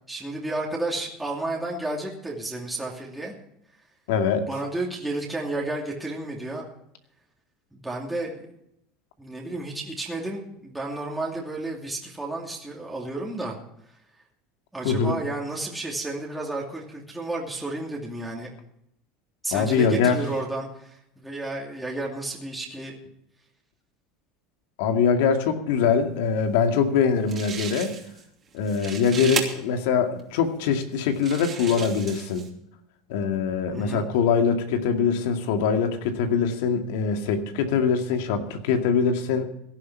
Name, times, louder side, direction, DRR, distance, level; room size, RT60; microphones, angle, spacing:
voice 1, 0.1-3.3 4.5-6.6 7.7-8.3 9.2-13.6 14.7-18.5 19.4-23.0 33.7-34.1, right 2 dB, 5° right, -3 dB, 2.6 m, -32 dB
voice 2, 4.1-4.5 14.8-15.2 19.5-20.2 24.8-27.9 28.5-32.5 33.1-39.4, left 6 dB, 80° left, 5 dB, 2.3 m, -23 dB
sound 1, 27.0-27.1 27.3-28.2 28.6-29.4 30.2-30.3 31.0-32.5, right 7 dB, 25° right, 2.9 m, -34 dB
17.5 x 11.5 x 4.7 m, 0.76 s
supercardioid pair, 145°, 0 cm